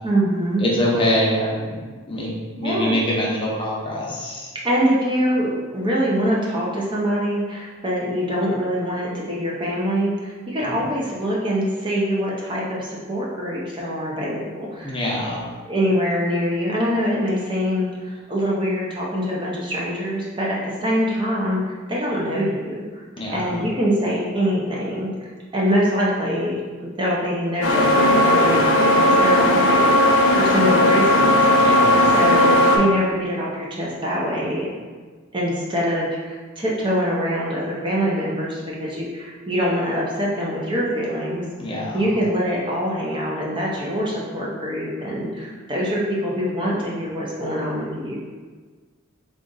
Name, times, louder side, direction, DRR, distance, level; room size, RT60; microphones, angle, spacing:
voice 1, 0.0-0.6 2.6-3.0 4.5-15.0 15.7-22.7 23.3-31.7 32.1-34.7 35.3-41.4 41.9-48.2, equal, 25° right, -4 dB, 0.6 m, -24 dB
voice 2, 0.6-2.3 2.6-4.5 10.6-10.7 14.8-15.4 23.2-23.6 31.6-32.1 41.6-42.1, equal, 25° left, -5 dB, 0.7 m, -24 dB
sound 1, 27.6-32.8, left 1 dB, 80° left, 0.7 m, -16 dB
3.8 x 2.4 x 3.8 m, 1.4 s
head